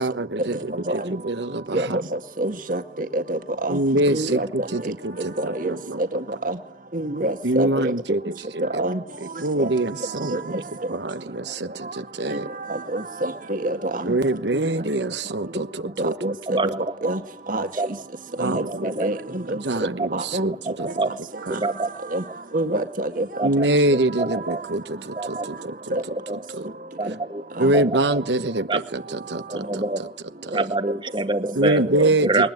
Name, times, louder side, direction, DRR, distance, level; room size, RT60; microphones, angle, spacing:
voice 1, 0.0-2.0 3.7-6.0 7.4-8.8 9.4-10.5 10.9-12.5 14.0-16.1 18.4-18.9 19.5-20.9 21.5-21.6 23.4-25.9 26.5-26.7 27.6-30.1 30.5-30.6 31.5-32.5, right 1 dB, 75° right, 1.2 m, -25 dB
voice 2, 2.4-2.8 3.3-3.8 4.1-4.5 5.4-5.7 6.5-6.6 6.9-7.7 8.8-9.0 9.6-9.7 10.3-10.4 12.9-13.8 16.0-16.3 17.0-17.2 17.5-17.7 18.4-18.6 19.0-19.1 20.1-20.5 22.1-22.2 22.5-23.2 25.9-26.0 31.8-32.1, right 1 dB, 50° right, 1.9 m, -25 dB
voice 3, 16.5-16.8 17.8-17.9 18.7-19.1 20.0-20.1 20.7-21.1 21.5-21.9 22.7-22.9 23.4-23.7 24.2-24.6 25.1-25.5 26.0-26.4 27.0-27.4 27.7-28.2 28.7-28.8 29.5-30.0 30.5-31.8 32.2-32.5, right 2 dB, 25° right, 1.7 m, -26 dB
22.0 x 19.5 x 9.3 m
head